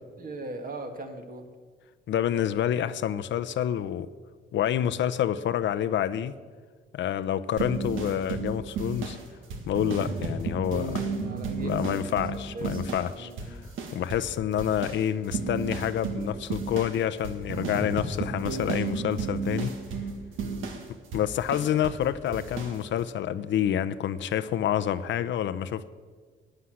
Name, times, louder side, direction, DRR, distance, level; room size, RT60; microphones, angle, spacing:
voice 1, 0.2-1.5 11.2-12.8 13.1-13.7 19.5-19.7, right 2 dB, 45° right, 2.0 m, -40 dB
voice 2, 2.1-4.1 4.5-6.3 6.9-9.2 9.7-11.1 11.6-13.6 13.9-19.7 21.1-25.9, left 10 dB, 70° left, 0.7 m, -28 dB
sound 1, 7.6-13.1 13.4-14.3 14.6-22.0 22.3-22.8, right 4 dB, 90° right, 1.8 m, -33 dB
11.5 x 9.9 x 7.8 m
cardioid pair, 90°, 20 cm